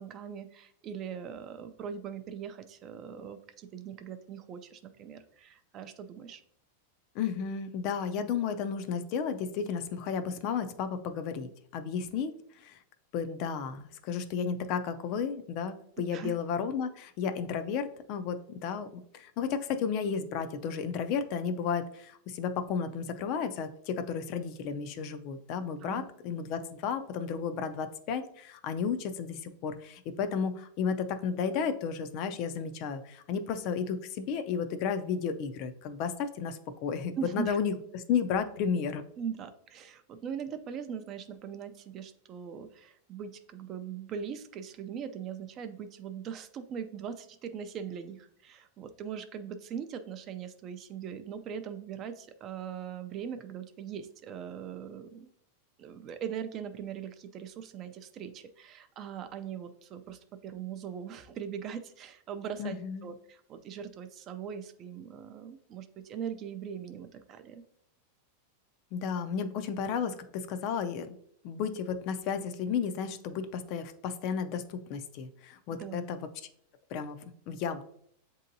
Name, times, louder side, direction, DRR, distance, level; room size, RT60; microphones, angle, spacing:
voice 1, 0.0-6.4 16.0-16.4 25.8-26.1 37.2-37.6 39.2-55.3 55.8-67.6 75.8-76.0, right 8 dB, 35° right, 9 dB, 0.4 m, -40 dB
voice 2, 7.1-12.8 13.1-39.0 62.6-63.1 68.9-71.1 71.4-76.3 76.9-77.2 77.5-77.8, left 6 dB, 45° left, 9 dB, 0.4 m, -33 dB
7.4 x 2.7 x 2.6 m, 0.69 s
supercardioid pair, 140°, 0 cm